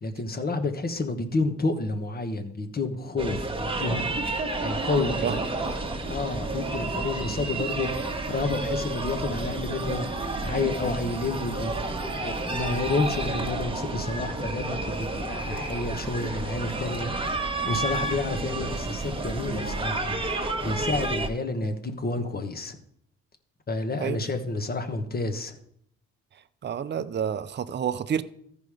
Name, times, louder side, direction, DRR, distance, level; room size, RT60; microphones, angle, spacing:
voice 1, 0.0-4.0 4.6-5.5 6.1-7.9 8.3-10.1 10.4-11.8 12.2-17.1 17.4-20.1 20.6-22.8 23.7-25.6, left 3 dB, 30° left, 1.2 m, -30 dB
sound 1, 3.2-21.3, right 2 dB, 20° right, 1.4 m, -30 dB
voice 2, 26.6-28.2, right 8 dB, 35° right, 0.6 m, -29 dB
13.5 x 5.2 x 4.9 m
cardioid pair, 90°, 30 cm